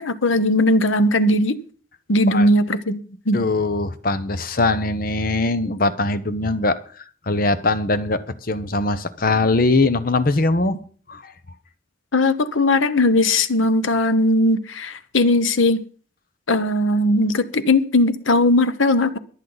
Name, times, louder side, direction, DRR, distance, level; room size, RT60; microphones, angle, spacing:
voice 1, 0.0-1.6 2.1-3.5 12.1-15.8 16.5-19.2, left 1 dB, 80° left, 1.1 m, -18 dB
voice 2, 3.3-6.8 7.3-10.8 11.1-11.3, left 2 dB, 45° left, 0.9 m, -21 dB
23.5 x 8.4 x 4.0 m
head